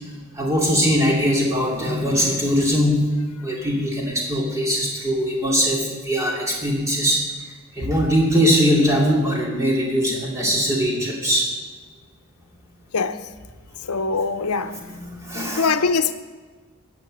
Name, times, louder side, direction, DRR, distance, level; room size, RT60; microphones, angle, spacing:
voice 1, 0.4-3.1 3.4-7.2 7.8-11.5 14.6-15.7, equal, 15° right, 2.5 m, -21 dB
voice 2, 13.9-14.8 15.6-16.1, left 4 dB, 90° left, 0.8 m, -22 dB
14.0 x 9.5 x 6.7 m
head